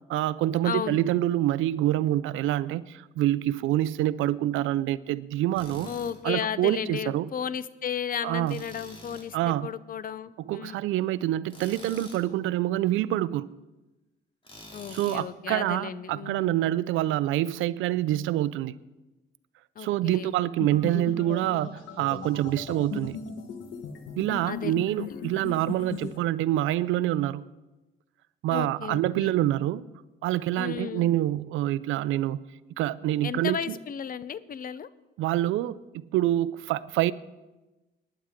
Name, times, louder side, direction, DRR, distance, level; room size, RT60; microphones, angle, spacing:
voice 1, 0.1-5.9 6.2-7.3 8.2-8.6 9.3-9.7 10.5-13.5 14.9-18.7 19.8-23.2 24.2-27.4 28.4-29.8 30.2-32.4 32.8-33.8 35.2-37.1, right 14 dB, 85° right, 18 dB, 0.4 m, -26 dB
voice 2, 0.6-1.0 5.8-10.8 14.7-16.6 19.8-20.4 24.5-24.7 25.1-25.3 28.5-29.4 30.6-31.1 33.2-34.9, left 8 dB, 45° left, 17 dB, 0.6 m, -34 dB
Tools, 5.6-6.2 8.5-9.3 11.5-12.3 14.4-15.3, left 1 dB, 25° left, 2.6 m, -46 dB
sound 1, 20.6-26.2, left 6 dB, 75° left, 1.3 m, -38 dB
19.0 x 10.0 x 3.6 m, 1.1 s
cardioid pair, 90°, 20 cm